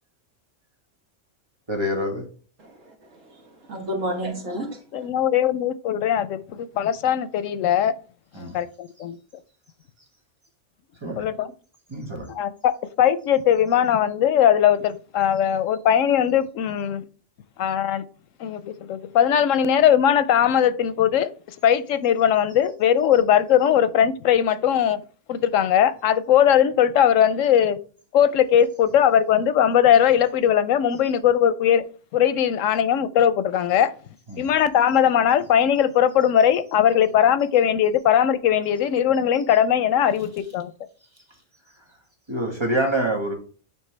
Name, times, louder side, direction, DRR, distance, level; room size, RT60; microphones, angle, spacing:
voice 1, 1.7-2.2 8.3-8.6 11.0-11.3 11.9-12.3 31.0-31.1 34.3-34.5 42.3-43.3, right 1 dB, 20° right, 1.4 m, -26 dB
voice 2, 2.6-5.1, right 1 dB, 85° right, 1.7 m, -32 dB
voice 3, 4.9-7.9 8.4-9.2 11.2-11.5 12.3-17.0 17.6-18.0 18.4-21.3 21.6-25.0 25.3-27.8 28.1-31.8 32.1-33.9 34.4-40.7, left 9 dB, 90° left, 1.0 m, -20 dB
9.1 x 3.3 x 3.3 m
omnidirectional pair, 1.3 m